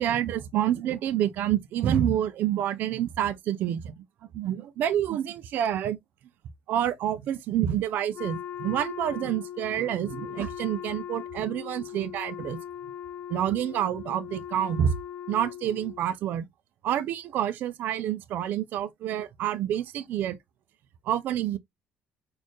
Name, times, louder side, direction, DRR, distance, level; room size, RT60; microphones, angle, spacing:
voice 1, 0.0-4.0 4.3-6.0 6.7-12.6 13.3-15.0 15.3-16.5 16.8-20.4 21.1-21.6, right 10 dB, 60° right, 0.4 m, -28 dB
Wind instrument woodwind instrument, 8.1-16.1, left 10 dB, 45° left, 0.4 m, -39 dB
4.2 x 2.4 x 3.0 m
cardioid pair, 135°, 3 cm